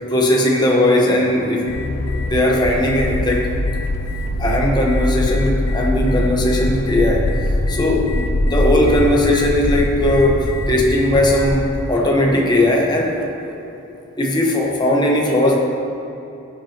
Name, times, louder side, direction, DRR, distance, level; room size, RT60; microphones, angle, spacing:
voice 1, 0.1-1.7 2.3-3.5 4.4-7.3 7.7-13.2 13.4-13.6 14.2-15.5, left 1 dB, 20° left, -1 dB, 1.1 m, -18 dB
sound 1, 1.7-11.7, left 1 dB, 85° left, 0.6 m, -22 dB
14.0 x 7.7 x 3.0 m, 2.9 s
head